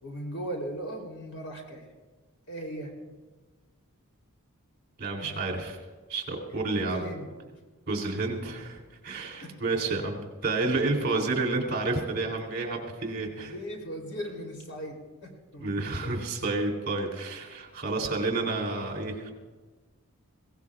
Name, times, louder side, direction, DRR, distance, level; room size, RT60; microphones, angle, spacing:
voice 1, 0.0-1.9 2.5-2.9 5.2-5.4 6.7-7.3 9.4-9.6 9.8-9.9 13.0-15.0 15.2-15.7 16.0-16.1, equal, 80° left, 1 dB, 3.4 m, -38 dB
voice 2, 5.0-5.8 6.1-7.0 7.9-13.5 15.6-19.3, right 3 dB, 45° right, 0 dB, 3.2 m, -30 dB
22.0 x 17.5 x 2.5 m, 1.3 s
head